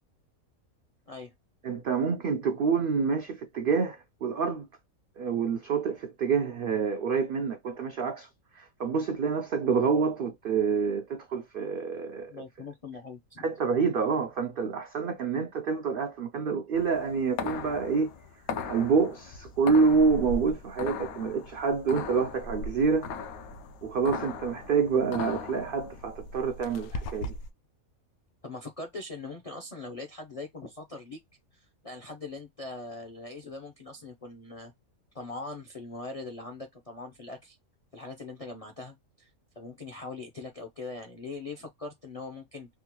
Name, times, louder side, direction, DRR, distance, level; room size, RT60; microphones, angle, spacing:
voice 1, 1.6-4.7 5.2-8.3 8.5-12.4 13.4-18.1 18.7-23.1 23.8-27.3, right 5 dB, 80° right, 0.5 m, -27 dB
voice 2, 12.3-13.5 24.9-25.0 28.4-31.2 31.5-34.7 35.1-37.6 37.9-39.3 39.6-42.7, left 3 dB, 60° left, 0.3 m, -41 dB
sound 1, 16.7-27.5, left 4 dB, 85° left, 1.1 m, -38 dB
3.6 x 2.1 x 2.9 m
omnidirectional pair, 1.5 m